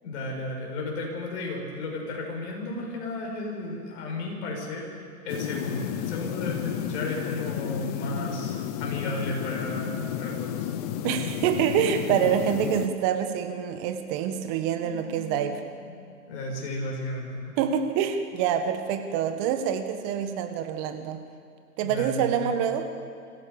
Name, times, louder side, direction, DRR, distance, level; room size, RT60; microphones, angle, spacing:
voice 1, 0.0-4.9 5.2-10.7 14.7-15.5 15.8-15.9 16.3-17.5 21.8-22.6, left 2 dB, 45° left, -1 dB, 6.7 m, -34 dB
sound 1, 5.3-12.9, left 11 dB, 25° left, 0.8 m, -32 dB
voice 2, 11.0-15.6 17.6-21.2 21.8-22.9, right 8 dB, 25° right, 8 dB, 1.4 m, -26 dB
25.5 x 15.5 x 7.1 m, 2.5 s
hypercardioid pair, 135°, 47 cm